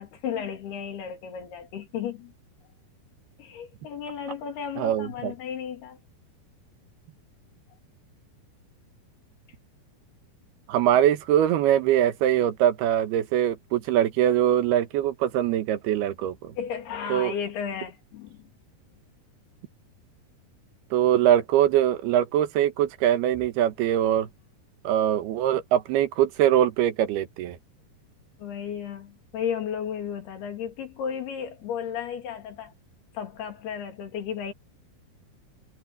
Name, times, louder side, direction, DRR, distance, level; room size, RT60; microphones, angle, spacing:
voice 1, 0.0-2.3 3.4-6.0 16.6-18.5 28.4-32.7 33.1-34.5, left 8 dB, 85° left, 4.8 m, -34 dB
voice 2, 4.8-5.3 10.7-16.5 17.1-17.3 20.9-24.3 24.8-27.6, right 11 dB, 85° right, 3.3 m, -22 dB
omnidirectional pair, 4.4 m